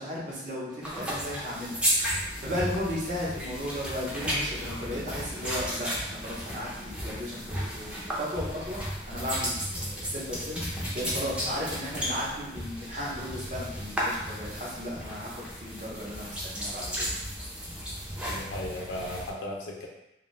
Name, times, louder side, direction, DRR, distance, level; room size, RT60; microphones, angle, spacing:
voice 1, 0.0-8.8 9.1-17.1, left 1 dB, 40° right, -6 dB, 0.7 m, -35 dB
sound 1, 0.8-19.3, equal, 5° right, 0.4 m, -34 dB
voice 2, 18.3-19.9, left 1 dB, 80° left, -1 dB, 0.4 m, -36 dB
2.6 x 2.2 x 3.0 m, 0.90 s
head